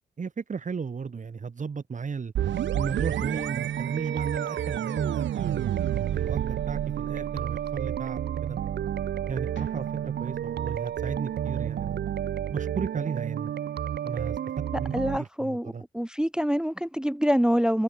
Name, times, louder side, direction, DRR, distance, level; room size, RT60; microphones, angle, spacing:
voice 1, 0.2-2.3 2.7-5.7 6.1-8.6 9.3-12.0 12.5-13.5 14.0-14.4 14.8-15.8, right 5 dB, 40° right, 1.7 m, -35 dB
sound 1, 2.4-15.2, right 10 dB, 65° right, 0.6 m, -31 dB
sound 2, 2.4-11.9, right 12 dB, 90° right, 0.9 m, -34 dB
sound 3, 9.5-13.7, left 10 dB, 90° left, 5.8 m, -64 dB
voice 2, 14.9-17.8, equal, 5° right, 0.5 m, -26 dB
cardioid pair, 85°, 19 cm